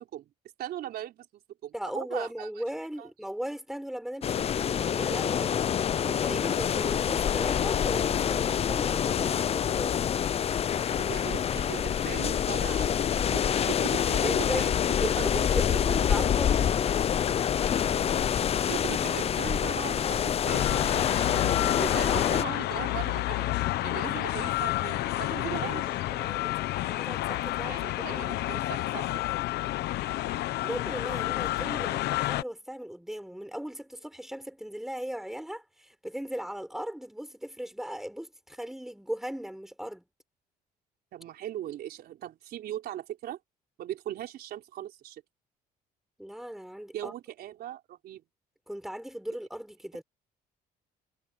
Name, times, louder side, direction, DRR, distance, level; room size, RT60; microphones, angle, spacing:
voice 1, 0.6-2.5 3.0-3.1 11.0-14.8 15.0-15.4 18.7-21.4 21.8-23.5 23.8-25.9 27.7-29.1 41.1-43.4 43.8-45.2 46.9-48.2, right 12 dB, 65° right, 4.2 m, -39 dB
voice 2, 1.7-10.3 13.6-13.8 14.1-14.7 15.0-17.0 25.5-28.4 30.6-40.0 46.2-47.1 48.7-50.0, equal, ahead, 5.5 m, -38 dB
sound 1, 4.2-22.4, left 9 dB, 35° left, 0.5 m, -26 dB
sound 2, 20.5-32.4, left 16 dB, 75° left, 1.1 m, -30 dB
cardioid pair, 110°, 17 cm